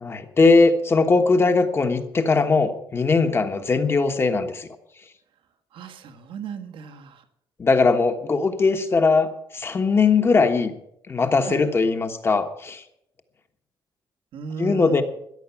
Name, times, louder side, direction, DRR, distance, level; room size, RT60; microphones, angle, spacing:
voice 1, 0.0-4.7 7.6-10.7 11.1-12.8 14.6-15.0, left 4 dB, 30° left, 7 dB, 1.3 m, -20 dB
voice 2, 5.7-7.2 11.4-11.6 14.3-15.0, right 6 dB, 80° right, 6 dB, 1.6 m, -35 dB
14.0 x 11.0 x 7.1 m, 0.78 s
cardioid pair, 155°, 9 cm